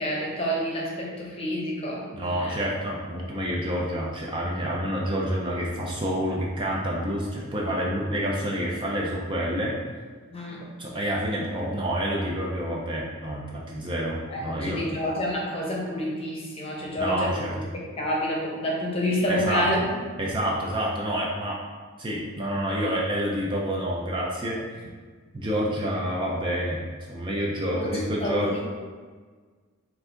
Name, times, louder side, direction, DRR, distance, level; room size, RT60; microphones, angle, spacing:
voice 1, 0.0-2.6 10.3-10.7 14.3-19.9 27.7-28.6, equal, 25° left, -3 dB, 0.8 m, -29 dB
voice 2, 2.1-9.7 10.8-14.9 17.0-17.5 19.3-19.7 20.2-21.6 22.0-24.9 25.3-26.8 27.1-28.5, equal, 20° right, -3 dB, 0.5 m, -28 dB
4.6 x 2.6 x 3.8 m, 1.5 s
head